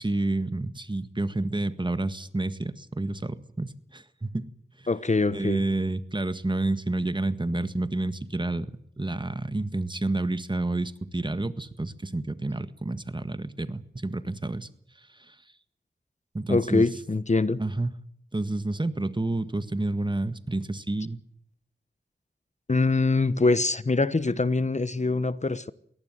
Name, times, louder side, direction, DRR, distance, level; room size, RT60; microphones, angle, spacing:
voice 1, 0.0-4.5 4.8-4.9 5.3-14.7 15.0-15.3 16.3-16.8 17.6-17.9 18.3-21.2, right 2 dB, 25° right, 1.7 m, -29 dB
voice 2, 4.9-5.6 16.5-17.6 22.7-25.7, left 3 dB, 40° left, 1.1 m, -24 dB
22.5 x 18.0 x 7.8 m
wide cardioid pair, 55°, 18 cm